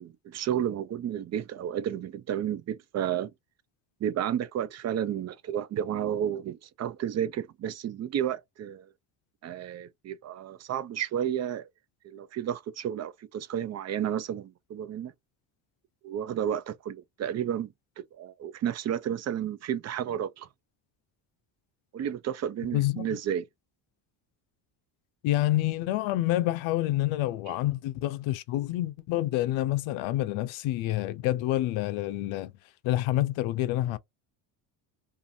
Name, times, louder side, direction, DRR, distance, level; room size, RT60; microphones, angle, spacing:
voice 1, 0.0-3.3 4.0-8.9 9.4-11.7 12.0-15.1 16.0-17.7 18.1-20.5 21.9-23.5 27.5-27.6, right 10 dB, 35° right, 0.4 m, -32 dB
voice 2, 22.7-23.1 25.2-32.5 32.8-34.0, left 15 dB, 70° left, 0.5 m, -28 dB
2.5 x 2.5 x 2.6 m
supercardioid pair, 75°, 50 cm